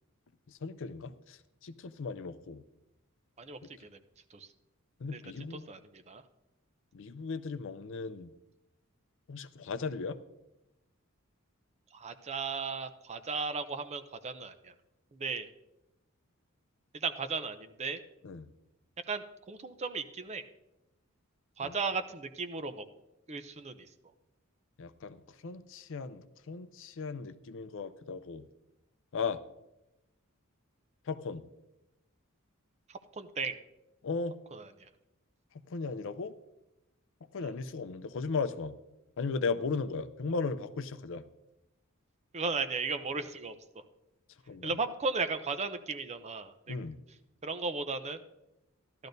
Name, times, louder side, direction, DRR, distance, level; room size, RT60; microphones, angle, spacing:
voice 1, 0.5-2.6 5.0-5.6 6.9-8.3 9.3-10.2 18.2-18.5 21.6-21.8 24.8-28.4 29.1-29.4 31.1-31.4 34.0-34.3 35.7-36.3 37.3-38.7 39.2-41.2 44.5-44.8 46.7-47.0, left 4 dB, 60° left, 12 dB, 0.5 m, -36 dB
voice 2, 3.4-4.0 4.3-4.5 5.1-5.2 5.5-6.2 11.9-14.7 15.1-15.5 16.9-18.0 19.1-20.4 21.6-22.8 23.3-23.9 32.9-33.6 34.5-34.7 37.4-37.5 42.3-43.5 44.6-46.8 47.4-48.2, right 4 dB, 30° right, 9 dB, 0.6 m, -36 dB
15.0 x 11.5 x 2.6 m, 0.93 s
head